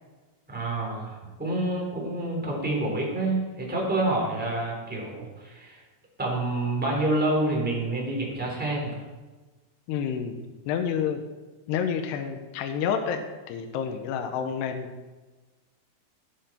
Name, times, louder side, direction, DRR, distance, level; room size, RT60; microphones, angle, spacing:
voice 1, 0.5-5.8 6.2-9.0, right 2 dB, 5° right, -2 dB, 2.8 m, -28 dB
voice 2, 9.9-10.4 10.7-11.2 11.7-14.9, left 7 dB, 80° left, 5 dB, 2.9 m, -29 dB
16.5 x 9.0 x 4.4 m, 1.3 s
omnidirectional pair, 4.9 m